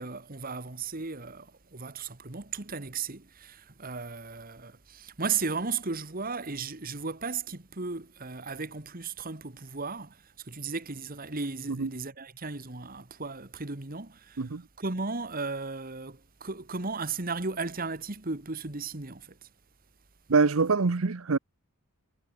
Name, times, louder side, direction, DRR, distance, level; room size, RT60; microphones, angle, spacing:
voice 1, 0.0-14.4 14.8-19.5, right 4 dB, 40° right, 1.8 m, -35 dB
voice 2, 20.3-21.4, right 4 dB, 70° right, 0.8 m, -24 dB
head